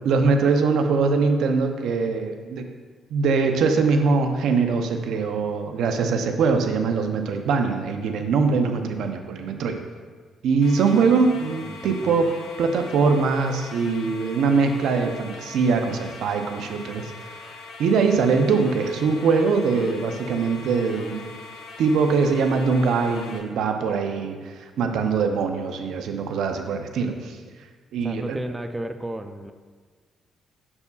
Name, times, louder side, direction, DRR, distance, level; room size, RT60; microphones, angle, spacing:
voice 1, 0.0-2.7 3.1-9.8 10.4-12.3 12.6-17.4 17.8-21.3 21.8-27.4 27.9-28.4, right 4 dB, 80° right, 6 dB, 0.5 m, -22 dB
sound 1, 10.6-23.4, left 3 dB, 80° left, 0.8 m, -42 dB
voice 2, 11.7-12.1 28.0-29.5, right 1 dB, 15° right, 8 dB, 0.3 m, -33 dB
6.9 x 6.8 x 2.3 m, 1.5 s
cardioid pair, 105°, 0 cm